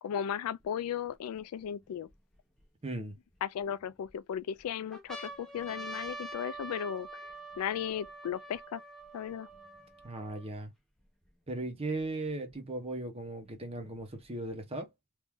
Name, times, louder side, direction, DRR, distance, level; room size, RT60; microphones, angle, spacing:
voice 1, 0.0-2.1 3.4-7.3 7.6-8.8 9.1-9.5, left 9 dB, 75° left, 0.3 m, -36 dB
sound 1, 0.6-0.7 1.4-2.6 3.3-4.1 4.6-4.7 4.9-10.5 11.3-11.4 11.5-12.5 13.5-14.5, right 1 dB, ahead, 0.8 m, -45 dB
voice 2, 2.8-3.1 10.0-10.7 11.5-14.9, right 2 dB, 25° right, 0.9 m, -37 dB
3.1 x 2.6 x 3.5 m
head